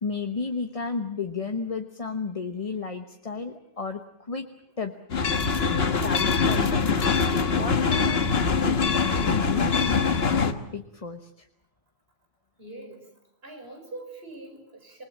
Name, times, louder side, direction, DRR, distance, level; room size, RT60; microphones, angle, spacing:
voice 1, 0.0-4.0 4.3-4.4 4.8-4.9 5.5-5.7 6.0-6.9 7.6-8.2 8.6-11.2, left 4 dB, 35° left, 6 dB, 1.1 m, -32 dB
sound 1, 5.1-10.5, left 5 dB, 70° left, 1.6 m, -23 dB
voice 2, 12.6-13.1 13.4-15.0, right 2 dB, 65° right, 4 dB, 5.2 m, -42 dB
27.0 x 20.5 x 7.4 m, 0.78 s
omnidirectional pair, 1.1 m